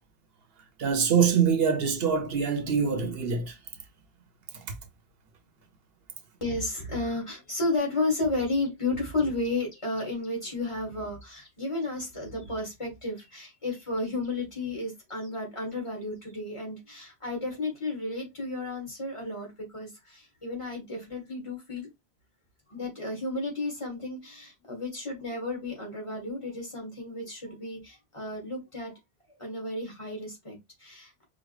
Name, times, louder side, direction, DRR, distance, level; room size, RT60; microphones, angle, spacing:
voice 1, 0.8-3.6 4.5-4.7, right 6 dB, 70° right, 0.9 m, -24 dB
voice 2, 6.4-21.9 22.7-28.9 29.4-31.2, left 2 dB, 30° left, 1.8 m, -33 dB
5.0 x 2.2 x 3.1 m
omnidirectional pair, 1.1 m